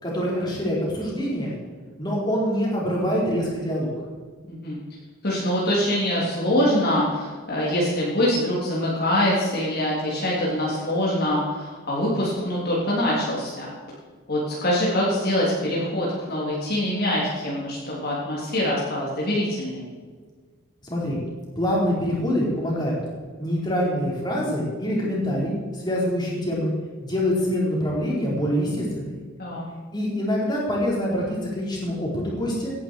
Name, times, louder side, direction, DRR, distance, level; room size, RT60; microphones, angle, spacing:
voice 1, 0.0-1.6 2.0-4.0 20.8-21.2 21.6-23.0 23.4-26.7 27.0-29.2 29.9-32.7, equal, 20° left, -4 dB, 4.6 m, -25 dB
voice 2, 4.5-4.8 5.2-13.7 14.3-19.9 29.4-29.7, left 1 dB, 45° left, -5 dB, 3.4 m, -24 dB
17.0 x 11.0 x 4.8 m, 1.5 s
head